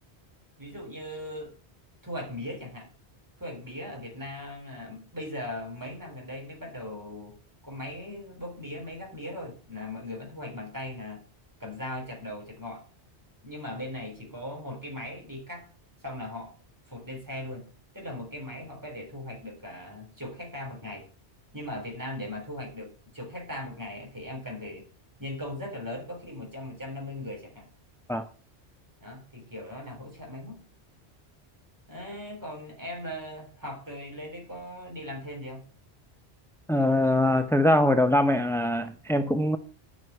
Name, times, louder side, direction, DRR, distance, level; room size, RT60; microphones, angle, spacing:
voice 1, 0.6-1.5 2.0-2.9 3.4-7.4 7.6-11.2 11.6-12.8 13.4-15.7 16.0-16.5 16.9-17.7 17.9-21.1 21.5-24.9 25.2-27.7 29.0-30.6 31.9-35.6, left 1 dB, 15° right, 0 dB, 3.7 m, -39 dB
voice 2, 36.7-39.6, left 1 dB, 5° left, 9 dB, 0.4 m, -23 dB
9.6 x 6.1 x 7.9 m, 0.39 s
omnidirectional pair, 1.1 m